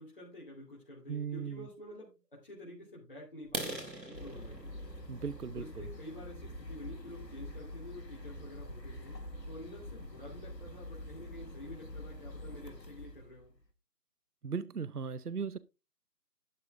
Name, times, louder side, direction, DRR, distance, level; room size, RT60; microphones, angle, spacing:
voice 1, 0.0-4.6 5.5-9.1 9.4-13.5, left 1 dB, 30° left, 3.1 m, -49 dB
voice 2, 1.1-1.7 5.1-5.7 14.4-15.6, right 6 dB, 65° right, 0.8 m, -37 dB
sound 1, 3.4-7.2 7.7-7.9 8.4-8.5 8.9-9.1 9.4-9.5 9.9-10.0 10.2-10.7, right 1 dB, 90° right, 3.6 m, -44 dB
sound 2, 4.1-13.6, left 1 dB, 85° left, 2.0 m, -46 dB
12.0 x 7.0 x 3.7 m
figure-of-eight pair, 165°, 49 cm